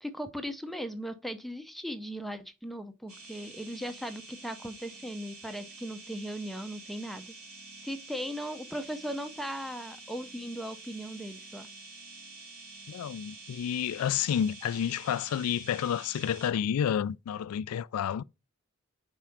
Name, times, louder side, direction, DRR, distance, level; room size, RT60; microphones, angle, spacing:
voice 1, 0.0-7.3 7.8-11.7, equal, ahead, 0.5 m, -38 dB
sound 1, 3.1-16.5, right 3 dB, 85° right, 3.2 m, -48 dB
voice 2, 12.9-18.2, left 9 dB, 75° left, 0.3 m, -30 dB
4.9 x 4.3 x 5.7 m
head